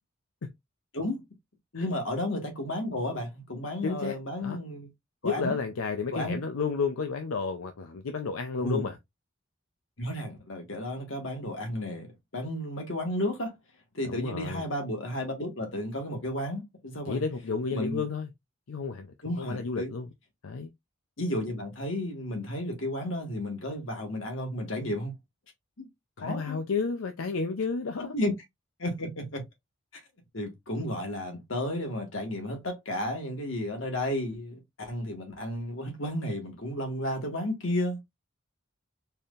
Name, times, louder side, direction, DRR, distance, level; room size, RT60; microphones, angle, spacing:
voice 1, 1.7-4.9 5.2-5.6 6.1-6.4 8.6-8.9 10.0-12.1 12.3-13.6 13.9-17.2 17.7-18.1 19.2-19.9 21.2-25.1 25.8-25.9 26.2-26.6 28.0-28.3 28.8-29.4 30.3-38.0, left 1 dB, 70° left, 1.6 m, -32 dB
voice 2, 3.8-4.6 5.2-9.0 14.1-14.6 17.1-18.3 18.7-20.1 20.4-20.7 26.2-28.1, left 4 dB, 90° left, 0.6 m, -32 dB
4.3 x 3.5 x 2.5 m
head